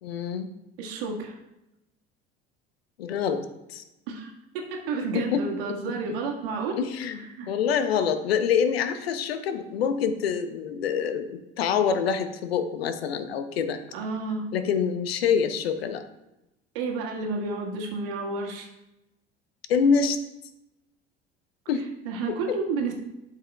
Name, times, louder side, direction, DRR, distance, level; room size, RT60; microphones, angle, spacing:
voice 1, 0.0-0.5 3.0-3.8 5.1-5.4 6.8-13.8 14.5-16.0 19.7-20.2 21.7-21.9 22.3-22.6, left 7 dB, 80° left, 10 dB, 0.8 m, -26 dB
voice 2, 0.8-1.4 4.1-6.8 7.3-7.5 13.9-14.4 16.7-18.7 22.0-22.9, right 4 dB, 70° right, 1 dB, 1.6 m, -31 dB
12.0 x 5.7 x 2.3 m, 0.92 s
figure-of-eight pair, 60°, 30 cm